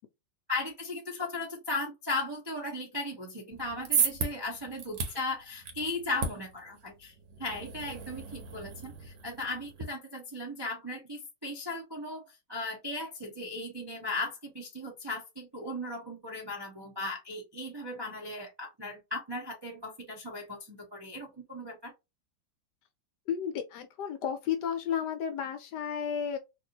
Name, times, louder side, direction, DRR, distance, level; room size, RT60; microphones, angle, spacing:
voice 1, 0.5-7.1 7.4-12.2 12.5-21.9, left 2 dB, 35° right, 0.4 m, -37 dB
sound 1, 3.5-9.8, right 5 dB, 85° right, 1.6 m, -35 dB
voice 2, 23.3-26.4, left 8 dB, 70° left, 1.1 m, -32 dB
3.4 x 2.5 x 2.7 m
omnidirectional pair, 2.1 m